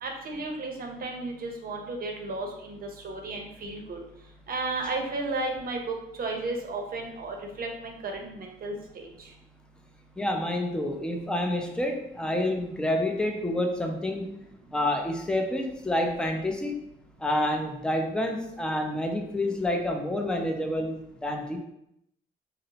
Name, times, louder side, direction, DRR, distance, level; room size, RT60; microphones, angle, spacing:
voice 1, 0.0-2.8 3.0-4.0 4.5-9.3, right 2 dB, 45° right, 2 dB, 0.6 m, -34 dB
voice 2, 10.2-14.3 14.7-16.8 17.2-21.6, left 1 dB, 5° left, 2 dB, 0.4 m, -28 dB
2.7 x 2.0 x 2.7 m, 0.80 s
cardioid pair, 90°, 20 cm